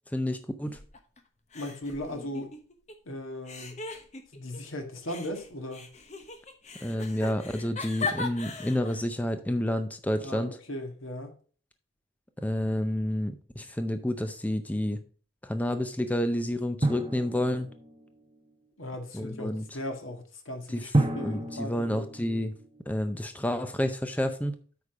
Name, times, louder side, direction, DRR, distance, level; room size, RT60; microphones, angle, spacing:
voice 1, 0.1-0.8 6.8-10.6 12.4-15.0 15.4-17.7 19.1-19.6 20.7-20.8 21.2-22.5 22.9-24.5, left 1 dB, 10° left, 0.5 m, -29 dB
sound 1, 0.6-1.2 1.5-2.9 3.4-4.6 5.1-9.1, left 4 dB, 35° left, 1.0 m, -38 dB
voice 2, 1.5-2.5 3.1-3.8 4.3-5.9 10.2-11.3 18.8-22.1, left 1 dB, 90° left, 1.7 m, -37 dB
Drum, 16.8-18.3 20.9-23.1, right 2 dB, 25° right, 0.9 m, -30 dB
8.4 x 5.1 x 4.9 m
head